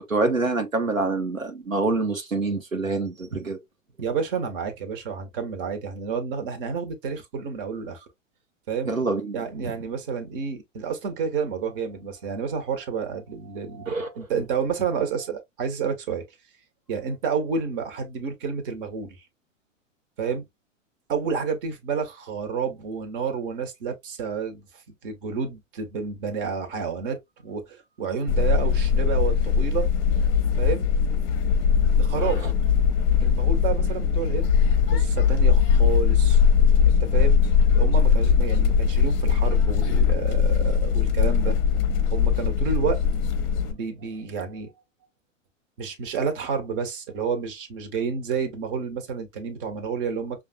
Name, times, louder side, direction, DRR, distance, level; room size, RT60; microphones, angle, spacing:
voice 1, 0.1-3.6 8.9-9.4 9.6-9.7 13.9-14.1 32.2-32.5, right 3 dB, 85° right, 1.0 m, -26 dB
voice 2, 4.0-8.1 8.7-8.9 9.3-16.2 16.9-19.2 20.2-20.4 21.1-29.9 30.6-30.9 32.0-32.4 33.2-34.6 34.9-36.4 36.9-37.4 37.7-41.5 42.1-43.0 43.7-44.7 45.8-50.4, right 6 dB, 45° right, 1.2 m, -30 dB
sound 1, 28.3-43.7, left 6 dB, 35° left, 0.7 m, -20 dB
5.6 x 2.5 x 2.2 m
figure-of-eight pair, 105°, 39 cm